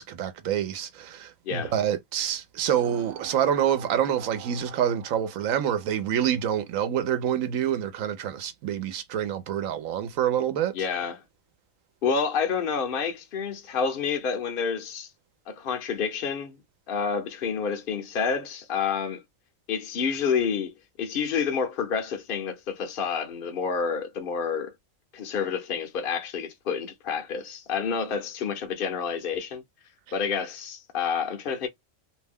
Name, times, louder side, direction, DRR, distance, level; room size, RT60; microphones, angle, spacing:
voice 1, 0.0-10.7, right 9 dB, 90° right, 1.0 m, -27 dB
sound 1, 2.7-6.6, right 9 dB, 65° right, 0.4 m, -45 dB
voice 2, 10.7-11.2 12.0-15.1 15.5-16.6 16.9-19.2 19.7-24.7 25.1-29.6 30.1-31.7, left 6 dB, 60° left, 0.6 m, -29 dB
2.6 x 2.1 x 3.4 m
omnidirectional pair, 1.4 m